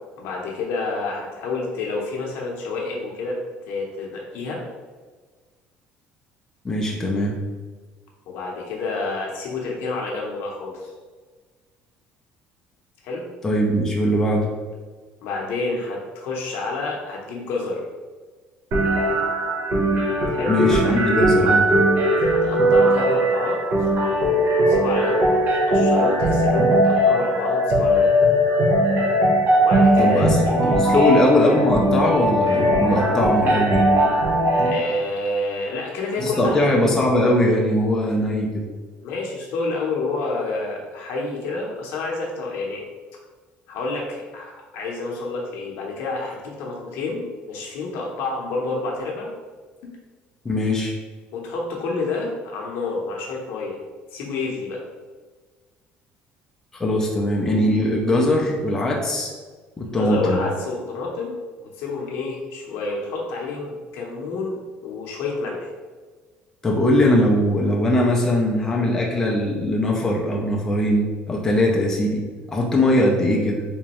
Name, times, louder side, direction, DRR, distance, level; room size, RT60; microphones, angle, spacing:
voice 1, 0.2-3.4 3.7-4.6 8.3-10.9 13.0-13.2 15.2-17.8 20.3-20.6 22.2-23.6 24.5-28.1 29.6-31.2 34.7-36.7 39.0-42.8 43.7-49.3 51.3-53.8 54.1-54.8 60.0-65.7, left 3 dB, 70° left, -2 dB, 0.7 m, -29 dB
voice 2, 6.6-7.4 13.4-14.5 20.5-21.7 30.0-30.4 30.7-33.8 36.2-38.6 50.4-50.9 56.7-59.3 59.8-60.4 66.6-73.6, left 1 dB, 10° left, -2 dB, 0.4 m, -20 dB
sound 1, 18.7-34.7, right 1 dB, 45° right, 0.8 m, -19 dB
3.5 x 3.0 x 2.9 m, 1.4 s
cardioid pair, 165°, 4 cm